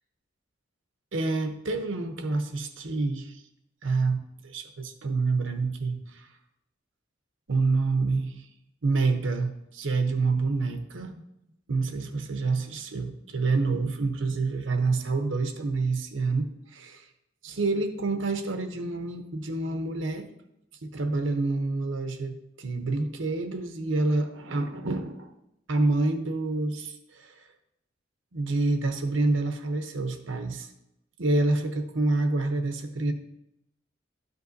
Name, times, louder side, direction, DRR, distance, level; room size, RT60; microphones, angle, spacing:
voice 1, 1.1-3.4 3.8-4.2 4.4-6.3 7.5-8.3 8.8-11.2 11.7-17.1 17.4-20.3 20.8-25.3 25.7-27.3 28.3-30.7 31.2-33.1, right 3 dB, 90° right, 6 dB, 0.9 m, -27 dB
12.0 x 5.3 x 2.7 m, 0.84 s
head